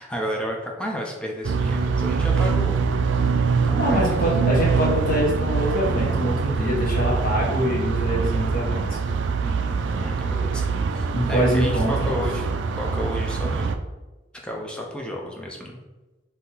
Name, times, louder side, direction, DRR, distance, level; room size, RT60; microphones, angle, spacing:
voice 1, 0.0-2.8 3.6-4.0 4.3-4.5 9.4-10.6 10.9-13.7 14.4-15.8, equal, 5° left, -1 dB, 0.6 m, -32 dB
sound 1, 1.4-13.8, right 5 dB, 70° right, 0.3 m, -24 dB
voice 2, 3.8-9.0 11.1-12.1, equal, 50° left, -4 dB, 1.3 m, -24 dB
4.1 x 2.8 x 3.9 m, 1.1 s
head